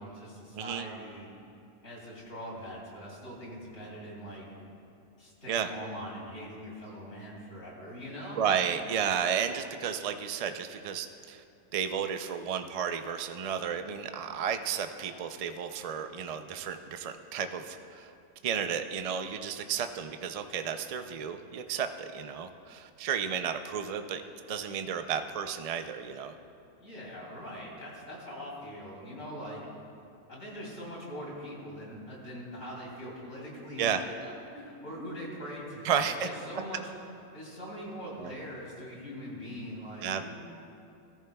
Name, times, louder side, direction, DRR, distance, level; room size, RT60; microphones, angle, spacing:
voice 1, 0.0-1.3 1.8-4.5 5.2-8.5 26.8-29.6 30.3-36.9 37.3-40.3, equal, 70° left, -4 dB, 3.1 m, -42 dB
voice 2, 0.5-0.9 5.5-5.7 8.4-11.4 11.7-18.1 18.4-24.2 24.5-26.3 33.8-34.0 35.8-36.3 38.2-38.3 40.0-40.3, right 7 dB, 75° right, 8 dB, 0.3 m, -32 dB
17.5 x 14.0 x 2.3 m, 2.6 s
omnidirectional pair, 1.3 m